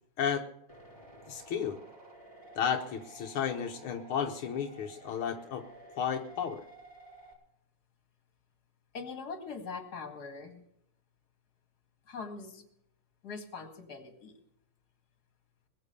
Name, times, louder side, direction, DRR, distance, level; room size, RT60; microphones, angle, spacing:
sound 1, 0.7-7.3, right 2 dB, 15° left, 4.7 m, -53 dB
voice 1, 1.3-1.8 2.6-5.6 6.0-6.6, left 7 dB, 80° left, 4 dB, 1.9 m, -33 dB
voice 2, 8.9-10.6 12.1-12.6 13.2-14.4, left 4 dB, 50° left, 7 dB, 2.5 m, -42 dB
21.0 x 7.3 x 6.7 m, 0.73 s
omnidirectional pair, 2.3 m